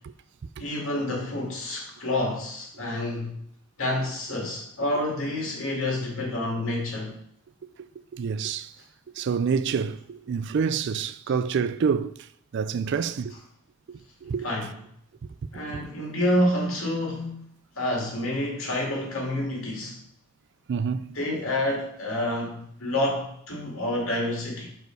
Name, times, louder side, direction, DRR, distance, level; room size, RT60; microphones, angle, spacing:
voice 1, 0.6-3.4 3.8-7.1 14.4-14.7 15.5-17.4 17.8-20.0 21.1-24.7, left 1 dB, 65° left, 2.4 m, -28 dB
voice 2, 8.1-8.7 9.2-12.2 12.5-13.3 13.9-14.5 20.7-21.2, right 6 dB, 55° right, 0.3 m, -27 dB
6.3 x 5.3 x 4.6 m
head